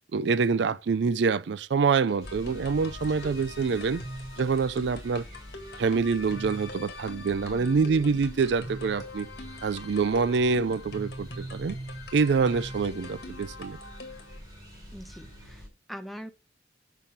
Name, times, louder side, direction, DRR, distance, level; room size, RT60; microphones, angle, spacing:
voice 1, 0.1-4.0 4.4-5.3 5.8-9.3 9.6-11.8 12.1-13.8, right 5 dB, 65° right, 0.4 m, -26 dB
sound 1, 2.1-14.4, left 1 dB, 55° left, 2.0 m, -42 dB
sound 2, 2.2-15.7, equal, 20° right, 5.6 m, -46 dB
voice 2, 7.4-7.9 14.9-16.3, equal, ahead, 0.8 m, -43 dB
7.2 x 5.8 x 6.5 m
head